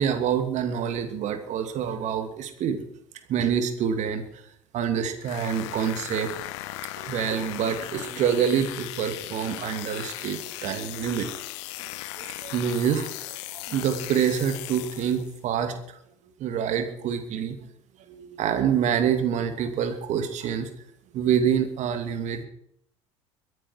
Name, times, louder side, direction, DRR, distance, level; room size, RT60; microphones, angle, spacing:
voice 1, 0.0-2.8 3.3-4.4 4.7-6.3 6.7-11.3 12.2-16.0 16.4-17.6 18.1-20.7 21.1-22.4, right 8 dB, 45° right, 8 dB, 2.7 m, -27 dB
sound 1, 5.2-15.4, left 17 dB, 60° left, 1.0 m, -37 dB
22.5 x 11.0 x 4.8 m, 0.68 s
figure-of-eight pair, 65°, 16 cm